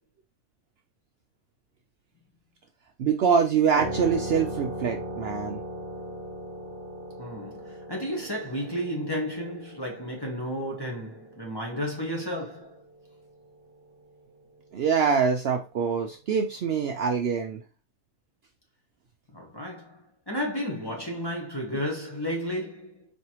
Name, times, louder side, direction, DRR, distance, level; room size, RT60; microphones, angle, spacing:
voice 1, 3.0-5.6 14.7-17.6, right 6 dB, 85° right, 0.5 m, -24 dB
sound 1, 3.8-13.0, right 1 dB, 55° right, 1.0 m, -38 dB
voice 2, 7.2-12.8 19.3-23.1, equal, 20° left, 0.9 m, -33 dB
4.3 x 3.2 x 2.9 m
omnidirectional pair, 1.6 m